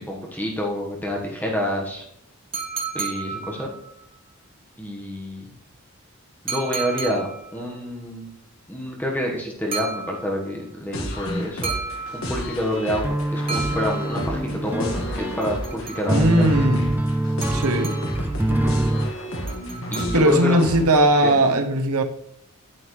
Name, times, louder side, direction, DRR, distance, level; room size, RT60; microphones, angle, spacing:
voice 1, 0.1-2.0 2.9-3.7 4.8-5.5 6.4-8.3 8.7-11.7 12.1-16.5 19.9-20.6 21.2-21.4, equal, 10° left, 1.2 m, -28 dB
sound 1, 2.5-4.0 6.5-7.6 9.7-10.6 11.6-12.7 13.5-14.5 15.4-16.4 17.4-18.3 19.5-20.6, right 5 dB, 25° right, 1.6 m, -33 dB
sound 2, 10.9-21.3, equal, 65° left, 1.6 m, -31 dB
sound 3, 13.0-19.2, right 1 dB, 10° right, 0.3 m, -25 dB
voice 2, 16.1-16.9 17.5-18.0 20.1-22.0, right 1 dB, 85° right, 1.0 m, -19 dB
9.1 x 9.0 x 3.2 m
head